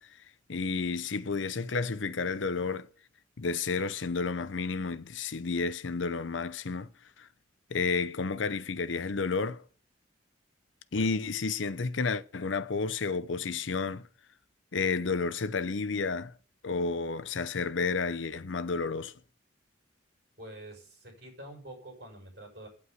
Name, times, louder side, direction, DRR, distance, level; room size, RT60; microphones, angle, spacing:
voice 1, 0.5-2.9 3.4-6.9 7.2-7.3 7.7-9.6 10.9-14.1 14.7-16.3 16.6-19.1, left 4 dB, 90° left, 0.7 m, -31 dB
voice 2, 20.4-22.7, right 1 dB, 60° right, 5.8 m, -47 dB
9.4 x 8.6 x 7.9 m
head